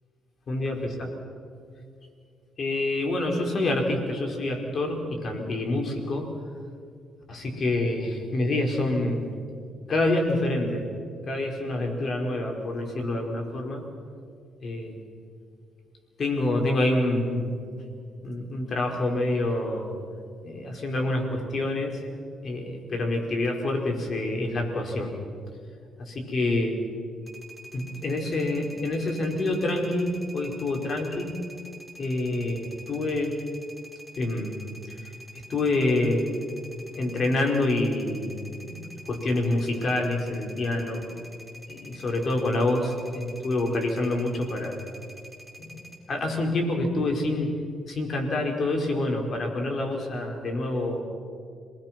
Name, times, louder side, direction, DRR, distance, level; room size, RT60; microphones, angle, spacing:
voice 1, 0.5-1.1 2.6-6.3 7.3-9.3 9.9-10.9 11.3-13.8 14.6-15.0 16.2-17.6 18.2-19.9 20.4-22.0 22.4-25.1 26.0-26.8 27.7-31.4 32.0-33.4 34.1-34.6 35.0-35.1 35.5-36.3 36.9-38.8 39.1-41.1 41.7-44.8 45.6-45.8 46.1-47.5 47.9-51.0, left 2 dB, 45° left, 2 dB, 4.6 m, -27 dB
sound 1, 27.2-46.0, equal, ahead, 4.3 m, -47 dB
27.0 x 20.0 x 6.0 m, 2.3 s
cardioid pair, 90°, 0 cm